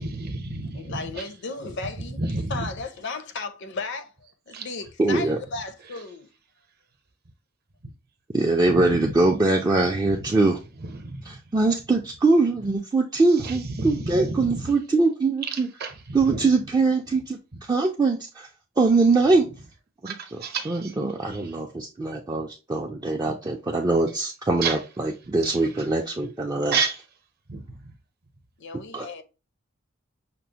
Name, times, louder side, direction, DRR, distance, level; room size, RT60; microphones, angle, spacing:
voice 1, 0.0-1.0 2.2-2.7 4.5-4.7 8.6-9.1 10.2-10.4 10.8-11.3 13.4-14.7 15.8-16.4 20.1-20.9 24.6-24.8 25.4-25.5 26.7-27.0 27.5-27.6, right 3 dB, 45° right, 0.7 m, -30 dB
voice 2, 0.7-2.2 2.5-4.1 4.5-6.3 28.6-29.2, left 3 dB, 55° left, 0.5 m, -35 dB
voice 3, 5.0-5.4 8.3-10.6 11.2-15.7 16.1-17.4 17.7-18.5 18.8-19.5 20.0-26.8 28.9-29.1, right 3 dB, 20° right, 0.3 m, -22 dB
5.8 x 2.0 x 2.8 m
head